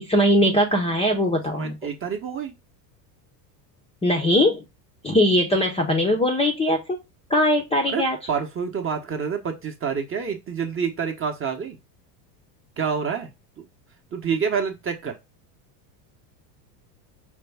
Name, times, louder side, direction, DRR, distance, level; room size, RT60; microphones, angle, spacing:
voice 1, 0.0-1.8 4.0-4.6 5.0-6.8 7.3-8.2, left 1 dB, 10° left, 0.6 m, -20 dB
voice 2, 1.6-2.5 7.9-11.8 12.8-13.3 13.6-13.7 14.1-15.2, right 6 dB, 25° right, 0.8 m, -28 dB
5.0 x 2.3 x 3.4 m
supercardioid pair, 105°, 50 cm